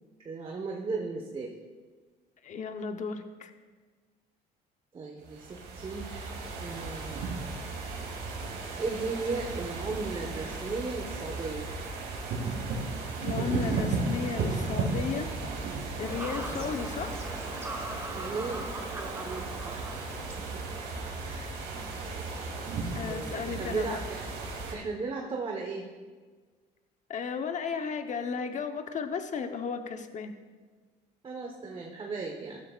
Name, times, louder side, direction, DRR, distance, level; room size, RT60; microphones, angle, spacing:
voice 1, 0.2-1.5 4.9-7.3 8.8-11.7 16.5-16.8 18.2-19.9 20.3-20.6 21.1-21.5 22.0-22.3 23.1-24.2 24.7-25.9 31.2-32.6, right 4 dB, 30° right, 0 dB, 1.3 m, -36 dB
voice 2, 2.4-3.5 13.2-15.3 16.0-17.2 21.8-21.9 23.0-24.0 27.1-30.3, left 5 dB, 45° left, 7 dB, 1.0 m, -34 dB
sound 1, 5.2-24.7, right 3 dB, 80° right, 2.7 m, -35 dB
Fowl / Bird vocalization bird call bird song, 16.0-21.0, right 1 dB, 15° right, 1.5 m, -41 dB
14.5 x 13.0 x 2.5 m, 1.4 s
cardioid pair, 110°, 17 cm